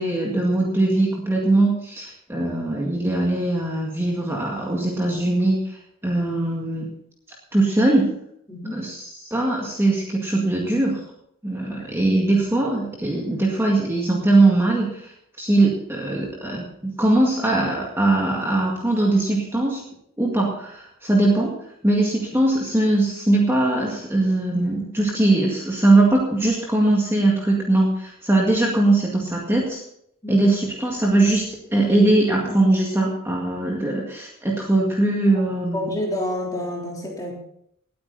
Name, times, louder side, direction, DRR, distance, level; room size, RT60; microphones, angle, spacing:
voice 1, 0.0-6.9 7.5-8.1 8.7-11.0 11.4-15.1 15.4-19.8 20.2-21.5 21.8-29.8 30.3-35.9, right 2 dB, 10° right, -2 dB, 1.9 m, -21 dB
voice 2, 8.5-8.8 30.2-30.5 35.3-35.4 35.7-37.3, left 1 dB, 15° left, -2 dB, 3.6 m, -28 dB
19.5 x 8.7 x 4.2 m, 0.72 s
head